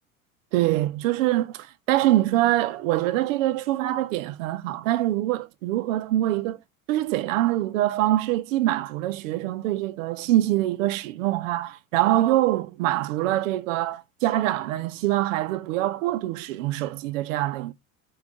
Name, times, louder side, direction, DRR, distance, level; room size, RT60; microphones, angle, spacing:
voice 1, 0.5-6.6 6.9-17.7, right 15 dB, 65° right, 0.7 m, -24 dB
4.7 x 3.1 x 3.7 m
hypercardioid pair, 75°, 42 cm